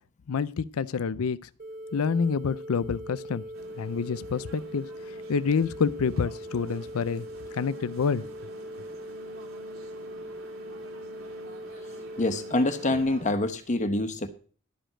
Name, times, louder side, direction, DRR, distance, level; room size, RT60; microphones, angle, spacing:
voice 1, 0.3-1.4 1.9-3.4 3.8-4.9 5.3-7.3 7.5-8.2, left 5 dB, 90° left, 0.5 m, -27 dB
sound 1, 1.6-13.0, equal, 40° right, 2.4 m, -41 dB
sound 2, 3.5-13.3, right 1 dB, 70° right, 2.9 m, -49 dB
voice 2, 12.2-14.3, left 2 dB, 35° left, 0.9 m, -26 dB
12.0 x 5.1 x 8.8 m
head